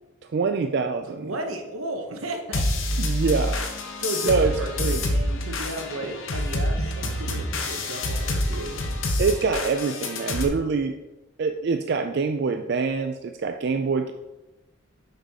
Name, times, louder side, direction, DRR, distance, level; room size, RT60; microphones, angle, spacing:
voice 1, 0.3-1.3 3.0-3.6 4.2-4.5 4.8-5.0 9.2-10.9 11.4-14.1, right 4 dB, 50° right, 6 dB, 0.3 m, -25 dB
voice 2, 1.2-2.6 4.0-8.8, right 1 dB, 85° right, 4 dB, 1.0 m, -34 dB
sound 1, 2.5-10.5, left 1 dB, 65° left, 0.9 m, -27 dB
6.6 x 5.7 x 3.6 m, 1.0 s
head